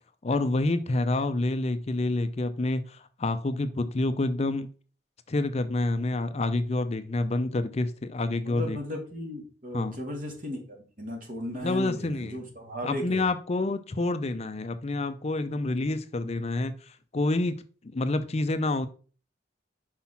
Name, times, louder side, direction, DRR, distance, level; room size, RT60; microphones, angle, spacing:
voice 1, 0.2-4.7 5.3-8.8 9.7-9.9 11.6-12.4 12.8-17.6 17.9-18.9, left 2 dB, 35° left, 11 dB, 0.5 m, -28 dB
voice 2, 8.4-13.2, equal, 50° right, 2 dB, 2.3 m, -36 dB
5.9 x 4.8 x 5.6 m, 0.39 s
head